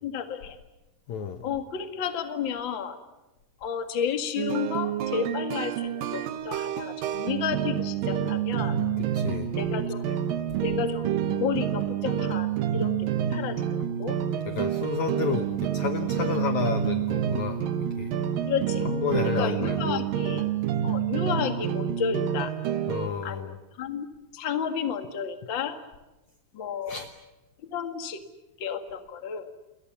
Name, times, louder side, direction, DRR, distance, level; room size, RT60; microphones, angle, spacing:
voice 1, 0.0-0.6 1.4-3.0 3.6-8.8 9.5-10.2 10.6-14.2 18.4-18.8 19.2-20.4 20.8-22.5 23.2-24.1 24.3-25.8 26.5-27.0 27.6-28.2 28.6-29.5, left 7 dB, 45° left, 7 dB, 1.6 m, -32 dB
voice 2, 1.1-1.4 8.6-8.7 9.0-9.5 14.5-17.6 17.9-18.1 18.8-20.0 22.9-23.6 26.9-27.1, left 7 dB, 75° left, 8 dB, 1.7 m, -31 dB
sound 1, 4.4-23.1, right 9 dB, 65° right, 2.6 m, -28 dB
29.5 x 22.0 x 7.1 m, 1.0 s
omnidirectional pair, 4.9 m